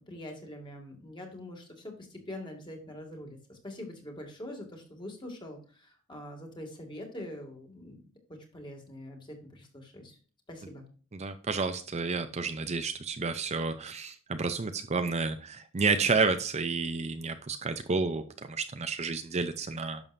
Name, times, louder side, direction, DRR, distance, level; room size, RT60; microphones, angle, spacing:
voice 1, 0.1-8.0 8.3-10.2 10.5-10.9, left 1 dB, 25° left, 2 dB, 2.3 m, -44 dB
voice 2, 11.1-20.0, right 4 dB, 30° right, 8 dB, 0.6 m, -30 dB
11.0 x 7.0 x 2.6 m, 0.41 s
head